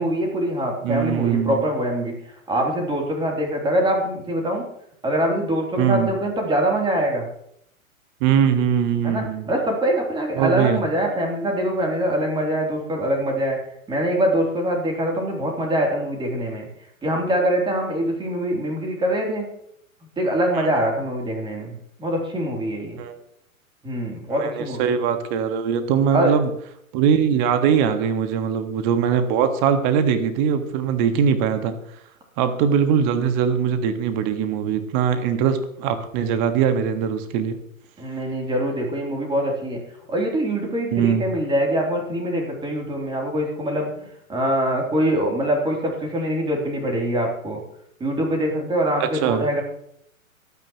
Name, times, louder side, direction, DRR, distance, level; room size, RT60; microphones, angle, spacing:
voice 1, 0.0-4.7 5.0-7.3 9.0-13.6 13.9-16.7 17.0-19.5 20.2-21.7 22.0-23.0 23.8-24.9 26.1-26.3 38.0-39.8 40.1-47.6 48.0-49.6, right 1 dB, 10° right, 0 dB, 3.1 m, -24 dB
voice 2, 0.8-1.6 5.8-6.1 8.2-9.5 10.3-10.8 20.5-20.7 22.9-23.2 24.3-26.5 26.9-31.8 32.4-37.6 40.9-41.2 49.0-49.5, right 7 dB, 35° right, 9 dB, 1.6 m, -21 dB
24.5 x 9.6 x 3.0 m, 0.73 s
figure-of-eight pair, 115°, 42 cm